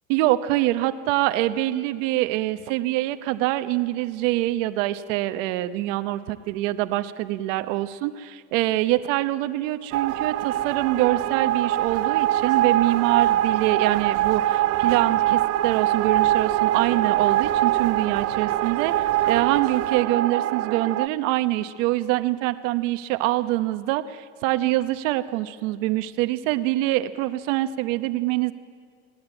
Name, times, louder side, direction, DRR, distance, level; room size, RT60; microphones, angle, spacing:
voice 1, 0.1-18.9 19.3-28.5, right 16 dB, 85° right, 11 dB, 1.0 m, -25 dB
sound 1, 9.9-21.1, right 13 dB, 40° right, 0.5 m, -23 dB
25.0 x 18.5 x 9.0 m, 2.1 s
cardioid pair, 150°, 37 cm